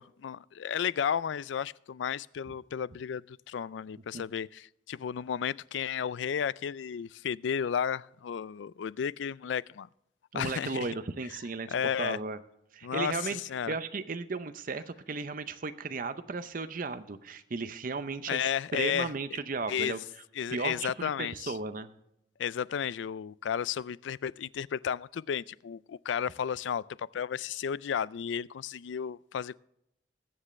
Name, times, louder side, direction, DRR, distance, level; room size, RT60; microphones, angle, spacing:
voice 1, 0.0-9.9 10.3-10.9 11.7-12.2 12.8-13.2 13.5-13.7 18.3-19.4 19.7-20.0 20.4-21.5 22.4-29.5, left 8 dB, 80° left, 0.4 m, -33 dB
voice 2, 10.3-12.4 12.7-13.4 13.7-20.0 20.5-21.9, right 4 dB, 50° right, 0.7 m, -35 dB
21.0 x 7.5 x 3.2 m
head